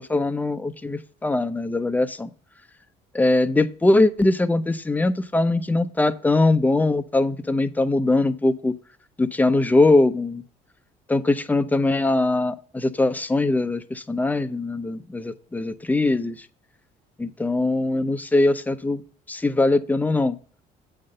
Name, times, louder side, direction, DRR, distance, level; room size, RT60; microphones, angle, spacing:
voice 1, 0.1-2.3 3.1-8.7 9.2-10.4 11.1-16.3 17.2-19.0 19.3-20.4, left 2 dB, 10° left, 0.6 m, -21 dB
8.6 x 3.9 x 6.5 m
cardioid pair, 110°, 17 cm